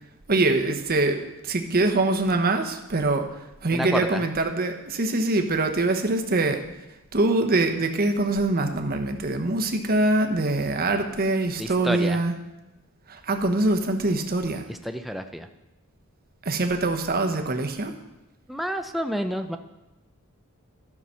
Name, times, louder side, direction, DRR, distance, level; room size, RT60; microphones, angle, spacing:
voice 1, 0.3-6.6 7.1-12.3 13.1-14.6 16.4-17.9, right 2 dB, 45° right, 4 dB, 1.0 m, -24 dB
voice 2, 3.7-4.2 11.6-12.2 14.7-15.5 18.5-19.6, equal, ahead, 6 dB, 0.5 m, -29 dB
12.0 x 5.9 x 5.6 m, 0.98 s
head